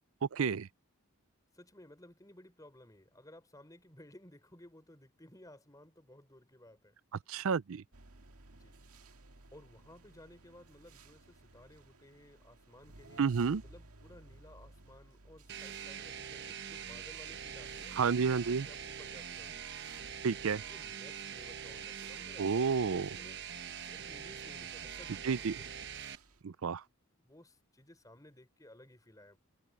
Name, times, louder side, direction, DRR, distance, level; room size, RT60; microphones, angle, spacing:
voice 1, 0.3-0.7 7.3-7.8 13.2-13.6 18.0-18.7 20.2-20.6 22.4-23.1 25.2-25.6 26.4-26.8, right 5 dB, 65° right, 0.5 m, -30 dB
voice 2, 1.5-6.9 8.5-8.8 9.5-13.2 13.6-19.7 20.6-23.4 23.8-25.9 27.2-29.4, left 1 dB, 15° left, 4.8 m, -57 dB
sound 1, 7.9-26.4, right 2 dB, 80° right, 1.9 m, -58 dB
sound 2, 15.5-26.2, right 8 dB, 50° right, 1.1 m, -44 dB
head